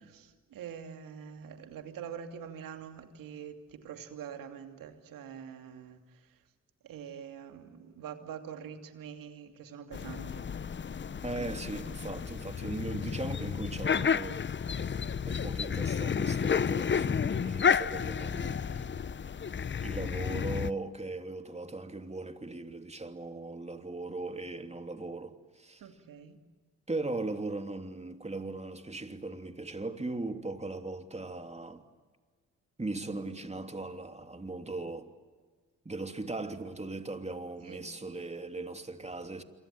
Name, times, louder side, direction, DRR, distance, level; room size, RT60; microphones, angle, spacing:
voice 1, 0.1-6.4 6.8-10.5 11.3-11.6 25.8-26.4 37.6-37.9, right 8 dB, 80° right, 2.7 m, -45 dB
sound 1, 9.9-20.7, left 7 dB, 35° left, 0.8 m, -31 dB
voice 2, 11.2-14.4 15.3-19.0 19.8-25.8 26.9-31.8 32.8-35.1 35.8-39.4, right 2 dB, 20° right, 2.9 m, -38 dB
27.0 x 24.0 x 8.9 m
supercardioid pair, 55°, 33 cm